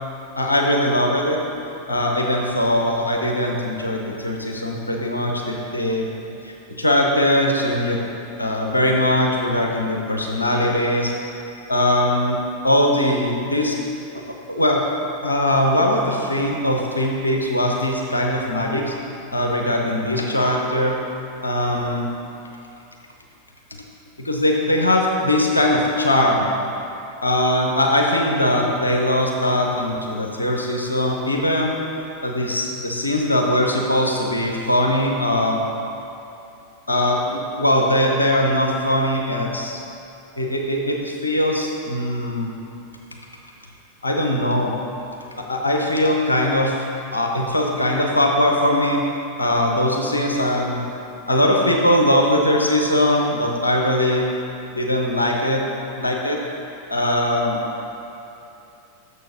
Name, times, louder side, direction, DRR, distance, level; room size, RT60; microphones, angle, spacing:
voice 1, 0.4-1.4 1.9-6.1 6.4-8.0 8.4-11.1 11.7-12.4 12.6-13.8 14.5-14.9 15.2-18.9 19.3-21.0 21.4-22.1 24.2-26.5 27.2-31.7 32.2-35.6 36.9-39.8 40.4-42.5 44.0-44.8 45.4-46.7 47.1-49.0 49.4-50.8 51.3-54.2 54.7-55.6 56.0-56.4 56.9-57.6, left 1 dB, 80° left, 0 dB, 0.8 m, -20 dB
6.7 x 6.7 x 5.2 m, 2.8 s
figure-of-eight pair, 90°, 0 cm